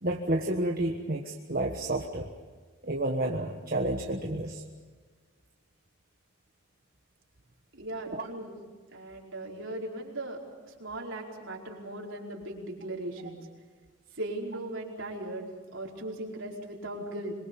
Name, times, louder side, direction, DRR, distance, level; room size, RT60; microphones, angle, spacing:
voice 1, 0.0-2.3 2.8-4.6 8.1-8.2, right 1 dB, 40° right, 2 dB, 1.4 m, -30 dB
voice 2, 7.7-8.5 8.9-10.4 10.6-13.5 14.1-17.3, right 1 dB, 60° right, -2 dB, 4.9 m, -38 dB
26.0 x 22.5 x 7.1 m, 1.5 s
head